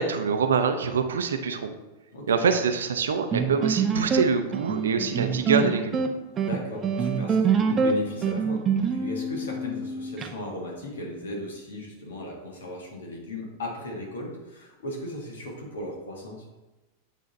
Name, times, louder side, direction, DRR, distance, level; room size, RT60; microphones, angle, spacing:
voice 1, 0.0-1.7 2.3-6.0, right 5 dB, 65° right, 7 dB, 0.6 m, -25 dB
voice 2, 2.1-2.6 6.4-16.5, left 1 dB, 65° left, -1 dB, 1.8 m, -36 dB
sound 1, 3.3-10.3, right 5 dB, 25° right, 0.6 m, -25 dB
8.4 x 3.7 x 4.1 m, 1.1 s
figure-of-eight pair, 90°, 0 cm